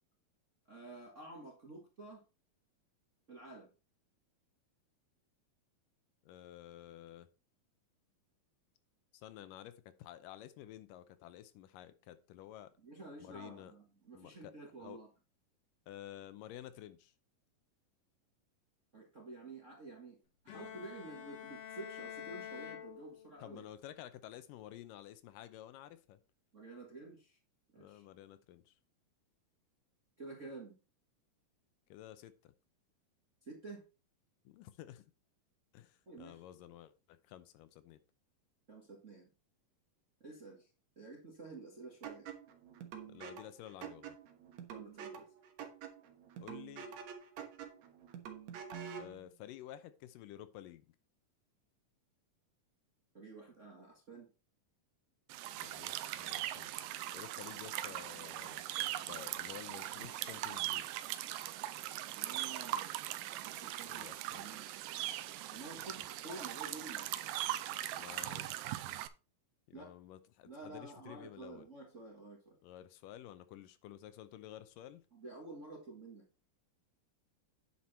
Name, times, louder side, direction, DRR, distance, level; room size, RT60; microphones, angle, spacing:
voice 1, 0.7-2.2 3.3-3.7 12.8-15.1 18.9-20.2 20.4-23.6 26.5-27.4 27.7-28.0 30.2-30.7 33.4-33.8 36.0-36.4 38.7-39.3 40.2-40.7 40.9-42.3 44.7-45.3 53.1-54.3 62.1-62.9 63.2-64.7 65.5-67.2 69.7-69.9 70.4-72.6 75.1-76.2, right 3 dB, 35° right, 1.2 m, -50 dB
voice 2, 6.2-7.3 9.1-12.7 13.2-13.7 14.1-14.5 14.8-15.0 15.9-17.1 23.4-26.2 27.8-28.8 31.9-32.5 34.5-35.0 35.7-38.0 43.1-44.2 46.4-46.9 49.0-50.9 55.6-56.7 57.1-58.6 59.0-60.9 63.9-64.5 68.0-68.7 69.7-71.6 72.6-75.1, left 12 dB, 80° left, 2.2 m, -52 dB
Bowed string instrument, 20.5-23.6, left 9 dB, 60° left, 2.1 m, -48 dB
sound 1, 42.0-49.2, right 8 dB, 65° right, 2.2 m, -47 dB
sound 2, 55.3-69.1, right 14 dB, 80° right, 2.2 m, -40 dB
9.5 x 5.9 x 4.3 m
omnidirectional pair, 4.0 m